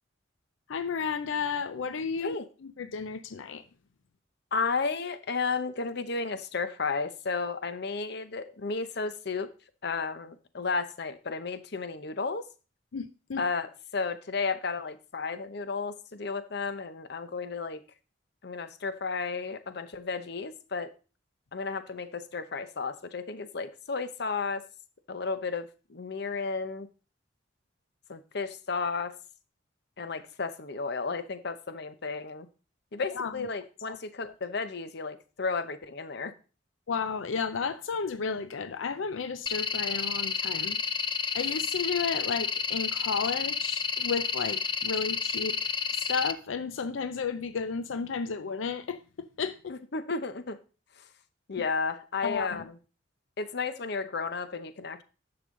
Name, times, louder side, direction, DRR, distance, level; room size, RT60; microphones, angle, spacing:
voice 1, 0.7-2.4 2.6-3.6 12.9-13.4 33.2-33.3 33.9-34.0 34.2-34.3 36.9-40.8 41.3-45.6 45.9-49.7 52.2-52.7, left 5 dB, 90° left, 0.5 m, -33 dB
voice 2, 4.5-9.5 9.8-12.5 13.4-17.8 18.4-20.9 21.5-24.6 25.1-26.9 28.1-29.1 30.0-32.5 32.9-36.3 49.7-50.6 51.0-51.1 51.5-52.6 53.4-55.0, left 4 dB, 60° left, 0.8 m, -33 dB
sound 1, 39.5-46.3, left 6 dB, 25° left, 0.4 m, -30 dB
10.5 x 6.9 x 3.7 m
head